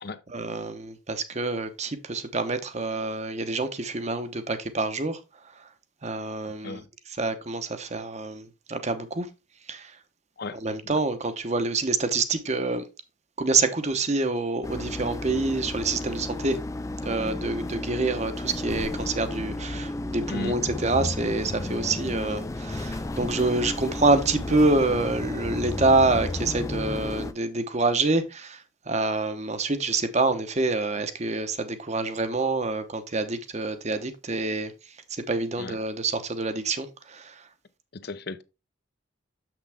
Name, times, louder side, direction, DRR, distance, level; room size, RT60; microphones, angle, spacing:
voice 1, 0.3-5.2 6.0-6.8 7.2-9.3 9.7-9.9 10.6-12.8 13.4-16.6 17.0-34.7 35.1-37.4, right 3 dB, 35° right, 0.9 m, -27 dB
voice 2, 10.4-11.0 20.3-20.6 35.6-35.8 37.9-38.4, left 3 dB, 55° left, 0.7 m, -36 dB
sound 1, 14.6-27.3, left 2 dB, 15° left, 0.3 m, -33 dB
7.3 x 6.0 x 3.5 m
head